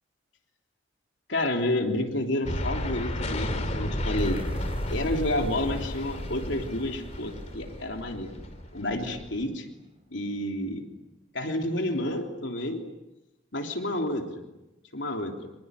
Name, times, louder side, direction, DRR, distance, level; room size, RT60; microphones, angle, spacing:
voice 1, 1.3-4.4 4.9-8.3 8.7-9.7 10.1-10.8 11.3-12.8 13.5-14.4 14.9-15.5, left 1 dB, 70° left, 3 dB, 3.3 m, -30 dB
sound 1, 2.4-9.4, left 1 dB, 35° left, 2.5 m, -33 dB
sound 2, 4.2-10.4, right 1 dB, 30° right, 4.2 m, -49 dB
26.0 x 21.0 x 9.7 m, 0.98 s
head